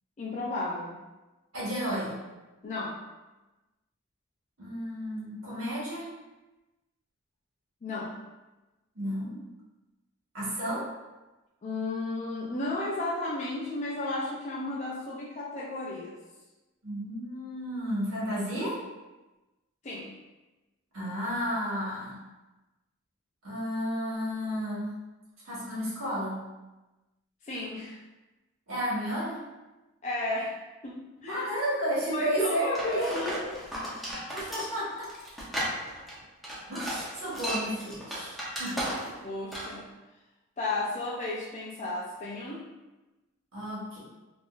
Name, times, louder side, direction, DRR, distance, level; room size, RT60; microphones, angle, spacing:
voice 1, 0.2-1.0 2.6-3.0 7.8-8.2 11.6-16.2 19.8-20.2 27.4-28.0 30.0-30.5 30.8-31.5 32.1-33.5 39.2-39.9 40.6-42.7, left 2 dB, 35° left, -4 dB, 0.4 m, -33 dB
voice 2, 1.5-2.2 4.6-6.1 8.9-9.4 10.3-10.9 16.8-18.8 20.9-22.2 23.4-24.9 25.4-26.4 28.7-29.4 31.3-33.3 34.3-35.1 36.7-39.1 43.5-44.0, equal, 70° right, -8 dB, 1.4 m, -32 dB
sound 1, 32.7-39.2 39.5-39.8, equal, ahead, 0.6 m, -35 dB
3.5 x 2.5 x 2.4 m, 1.1 s
head